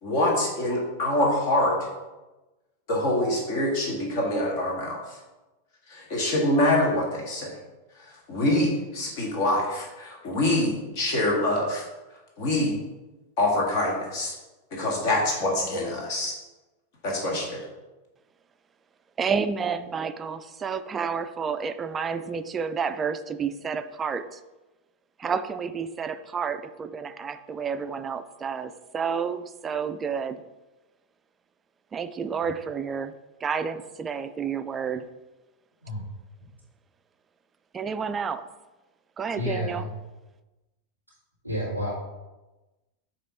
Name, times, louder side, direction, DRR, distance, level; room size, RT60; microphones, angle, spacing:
voice 1, 0.0-1.7 2.9-5.0 5.9-7.5 8.3-11.8 12.4-12.8 13.4-14.3 14.7-16.3 17.0-17.6, left 1 dB, 45° left, -2 dB, 1.8 m, -25 dB
voice 2, 19.2-24.4 25.2-30.4 31.9-33.1 33.4-35.0 37.7-38.4 39.2-39.9, right 6 dB, 20° right, 11 dB, 0.4 m, -30 dB
voice 3, 39.3-39.9 41.4-41.9, left 1 dB, 90° left, -10 dB, 1.7 m, -30 dB
8.4 x 3.1 x 4.1 m, 1.1 s
figure-of-eight pair, 90°, 0 cm